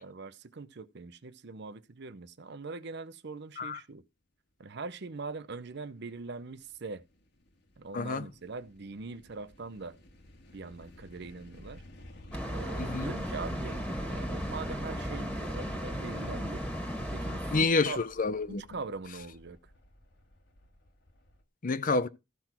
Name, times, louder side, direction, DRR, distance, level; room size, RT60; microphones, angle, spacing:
voice 1, 0.0-4.0 4.6-7.0 7.8-10.0 10.5-11.8 12.5-16.6 17.1-18.0 18.6-19.6, right 4 dB, 55° right, 0.7 m, -42 dB
sound 1, 5.9-21.4, left 1 dB, 60° left, 1.7 m, -53 dB
voice 2, 7.9-8.3 12.8-13.1 17.5-18.6 21.6-22.1, left 3 dB, 40° left, 0.7 m, -28 dB
sound 2, 12.3-17.6, equal, 5° left, 2.0 m, -35 dB
14.5 x 6.0 x 4.4 m
head